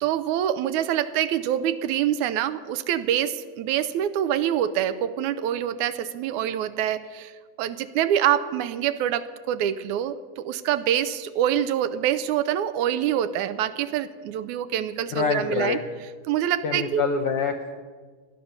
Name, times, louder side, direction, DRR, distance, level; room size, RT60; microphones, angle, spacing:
voice 1, 0.0-7.3 7.6-15.8 16.3-17.1, right 10 dB, 80° right, 13 dB, 2.0 m, -25 dB
voice 2, 15.1-15.8 16.6-17.8, left 5 dB, 70° left, 3 dB, 1.4 m, -25 dB
17.0 x 11.0 x 6.7 m, 1.5 s
omnidirectional pair, 3.5 m